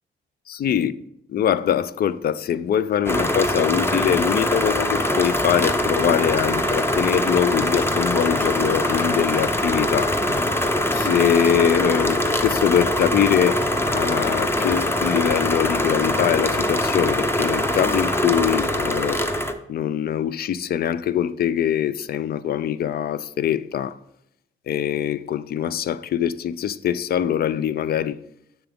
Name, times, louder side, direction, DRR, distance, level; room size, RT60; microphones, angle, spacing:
voice 1, 0.5-0.9 1.3-13.6 13.9-19.2 19.7-24.0 24.7-28.2, left 9 dB, 50° left, 0.4 m, -23 dB
sound 1, 3.1-19.5, left 1 dB, 10° left, 0.6 m, -23 dB
7.5 x 5.9 x 3.5 m
cardioid pair, 90°, 20 cm